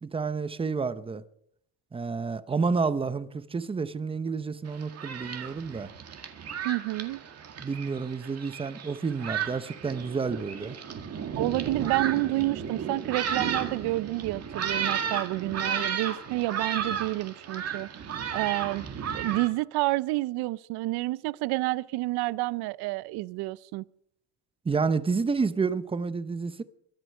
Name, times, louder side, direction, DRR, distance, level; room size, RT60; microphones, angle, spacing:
voice 1, 0.0-1.2 1.9-5.9 7.6-10.8 24.6-26.6, right 4 dB, 15° right, 0.6 m, -30 dB
Thunderstorm, 4.7-19.5, right 7 dB, 40° right, 1.9 m, -34 dB
voice 2, 6.6-7.2 11.4-18.0 18.3-18.8 19.1-23.8, right 19 dB, 80° right, 0.5 m, -29 dB
22.5 x 7.9 x 6.5 m
cardioid pair, 145°, 38 cm